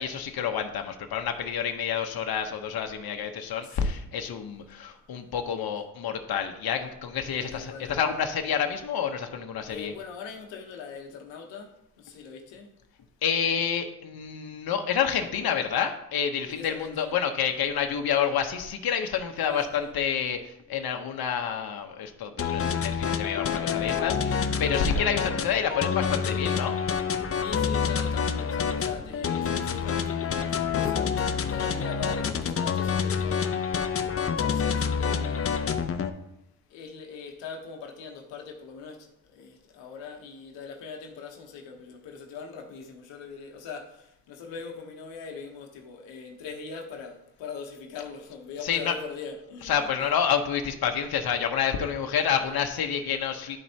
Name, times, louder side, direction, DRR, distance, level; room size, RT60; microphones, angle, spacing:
voice 1, 0.0-9.9 13.2-26.8 48.6-48.9 49.6-53.6, left 7 dB, 55° left, 0.9 m, -28 dB
voice 2, 7.4-8.1 9.7-12.8 16.5-17.2 19.5-19.9 24.8-24.9 27.3-35.7 36.7-49.9, left 5 dB, 90° left, 1.0 m, -41 dB
sound 1, 22.4-36.1, left 6 dB, 30° left, 0.6 m, -27 dB
11.0 x 4.2 x 2.8 m
supercardioid pair, 65°, 43 cm